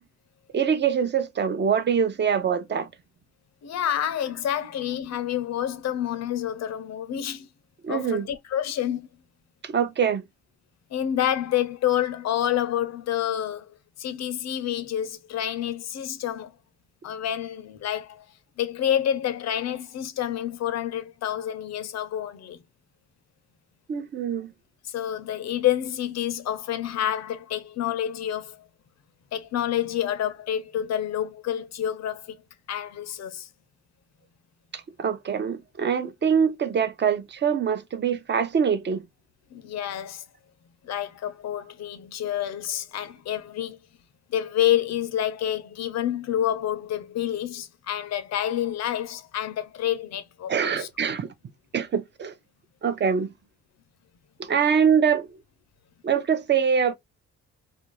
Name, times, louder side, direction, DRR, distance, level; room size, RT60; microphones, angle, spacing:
voice 1, 0.5-2.9 7.8-8.3 9.6-10.2 23.9-24.5 34.7-39.1 50.5-51.3 51.7-52.3 52.8-53.3 54.4-55.3 56.0-56.9, right 7 dB, 35° right, 0.6 m, -24 dB
voice 2, 3.6-7.5 7.9-9.1 10.9-16.5 17.0-18.3 18.6-22.6 24.8-28.6 29.3-32.4 32.7-33.5 39.5-40.2 40.8-43.8 44.3-50.9, left 11 dB, 60° left, 0.6 m, -28 dB
2.5 x 2.3 x 3.0 m
cardioid pair, 90°, 30 cm